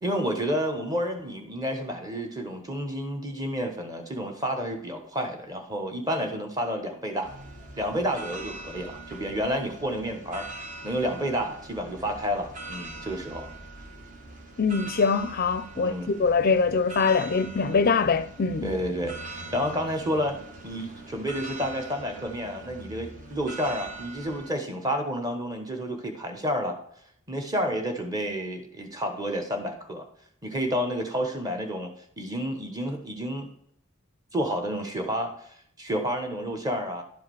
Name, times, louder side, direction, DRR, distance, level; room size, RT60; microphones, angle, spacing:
voice 1, 0.0-7.3 7.8-13.5 15.8-16.1 18.6-20.4 20.6-26.8 27.3-30.0 30.4-33.5 34.3-35.3 35.8-37.0, equal, 20° right, 1.2 m, -30 dB
sound 1, 7.2-24.5, right 2 dB, 35° right, 1.0 m, -42 dB
voice 2, 14.6-18.8, left 5 dB, 45° left, 0.4 m, -23 dB
11.5 x 4.9 x 4.7 m
head